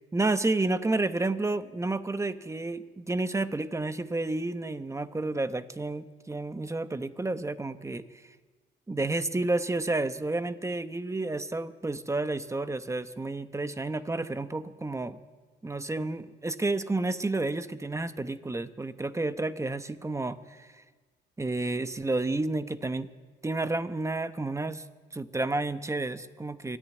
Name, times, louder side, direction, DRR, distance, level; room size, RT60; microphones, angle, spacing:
voice 1, 0.1-8.0 8.9-15.2 15.6-20.7 21.4-23.1 23.4-24.8 25.1-26.8, right 2 dB, 15° right, 11 dB, 1.1 m, -30 dB
24.0 x 13.5 x 9.4 m, 1.4 s
cardioid pair, 90°, 20 cm